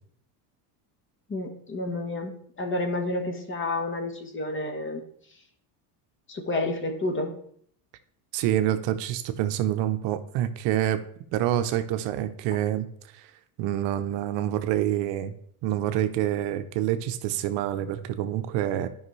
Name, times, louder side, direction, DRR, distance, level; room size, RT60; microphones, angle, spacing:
voice 1, 1.3-5.0 6.3-7.4, left 2 dB, 25° left, 5 dB, 1.3 m, -30 dB
voice 2, 8.3-11.0 11.3-12.9 13.1-13.3 13.6-15.3 15.6-18.9, right 12 dB, 65° right, 9 dB, 0.8 m, -27 dB
11.0 x 5.4 x 3.2 m, 0.63 s
supercardioid pair, 120°, 48 cm